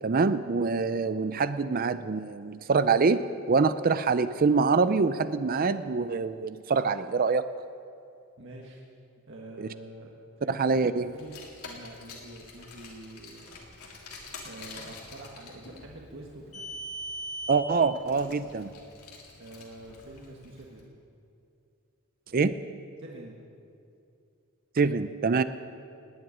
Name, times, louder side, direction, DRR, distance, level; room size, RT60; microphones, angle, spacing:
voice 1, 0.0-7.4 9.6-9.7 10.5-11.1 17.5-18.7 22.3-22.5 24.8-25.4, right 4 dB, 40° right, 12 dB, 0.5 m, -25 dB
voice 2, 8.4-8.8 9.3-10.1 10.4-11.4 11.6-13.5 14.4-16.6 19.4-21.0 23.0-23.4, right 1 dB, 55° right, -2 dB, 1.6 m, -46 dB
Car, 11.1-20.6, left 1 dB, 85° left, 3.0 m, -43 dB
18.5 x 7.9 x 9.9 m, 2.6 s
head